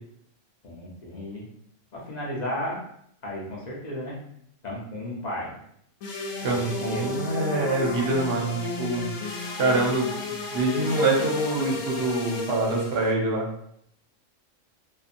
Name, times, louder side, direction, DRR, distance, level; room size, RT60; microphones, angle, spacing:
voice 1, 0.6-1.5 1.9-2.8 3.2-4.2 4.6-5.6 6.5-7.2, left 1 dB, 45° left, -4 dB, 0.7 m, -34 dB
sound 1, 6.0-13.1, left 3 dB, 85° left, 1.0 m, -32 dB
voice 2, 6.4-9.1 9.6-10.0 10.5-13.5, right 2 dB, 60° right, -1 dB, 0.8 m, -25 dB
2.6 x 2.3 x 2.5 m, 0.70 s
omnidirectional pair, 1.3 m